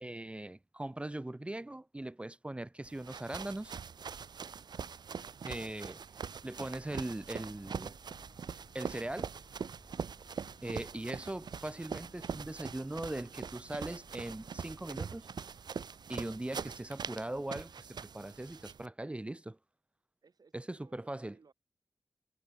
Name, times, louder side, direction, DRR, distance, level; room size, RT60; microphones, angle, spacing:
voice 1, 0.0-3.8 5.4-6.0 6.4-7.9 8.7-9.3 10.6-15.3 16.1-19.6 20.5-21.3, right 1 dB, 15° right, 0.6 m, -40 dB
sound 1, 2.8-18.9, right 6 dB, 90° right, 0.8 m, -43 dB
sound 2, 6.6-15.7, left 3 dB, 35° left, 6.0 m, -62 dB
voice 2, 20.2-21.5, right 5 dB, 65° right, 5.9 m, -62 dB
wide cardioid pair, 105°, 7 cm